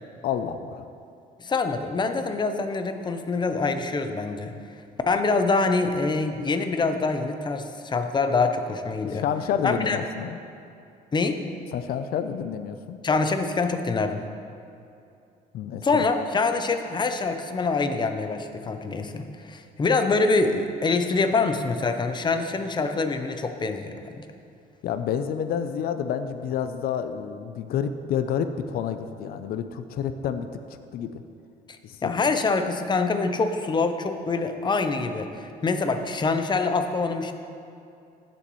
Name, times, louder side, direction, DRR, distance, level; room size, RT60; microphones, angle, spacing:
voice 1, 0.2-0.9 9.0-10.4 11.7-13.0 15.5-16.0 24.8-30.5 30.9-31.2 31.8-32.2, left 8 dB, 65° left, 9 dB, 0.5 m, -29 dB
voice 2, 1.4-4.5 5.1-9.2 9.6-10.0 11.1-11.4 13.0-14.2 15.8-24.2 31.7-37.3, left 3 dB, 25° left, 7 dB, 0.7 m, -25 dB
15.0 x 6.9 x 3.1 m, 2.6 s
cardioid pair, 110°, 17 cm